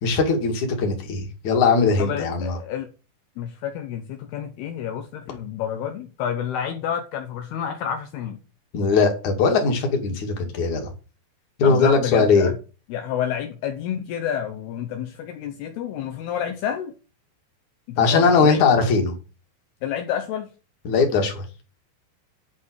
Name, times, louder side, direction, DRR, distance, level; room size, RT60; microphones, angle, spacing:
voice 1, 0.0-2.6 8.7-10.9 11.6-12.5 18.0-19.1 20.8-21.5, left 4 dB, 50° left, 3.4 m, -20 dB
voice 2, 2.0-2.9 3.4-8.4 11.6-12.5 12.9-16.9 17.9-18.7 19.8-20.5, left 9 dB, 75° left, 3.0 m, -29 dB
11.5 x 5.0 x 8.0 m
omnidirectional pair, 4.8 m